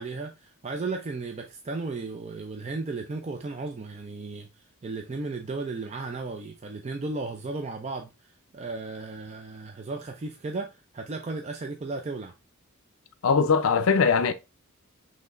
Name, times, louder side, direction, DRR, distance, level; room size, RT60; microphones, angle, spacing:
voice 1, 0.0-4.5 4.8-12.3, right 3 dB, 30° right, 0.4 m, -35 dB
voice 2, 13.2-14.3, left 5 dB, 70° left, 0.5 m, -21 dB
5.7 x 3.2 x 2.4 m
head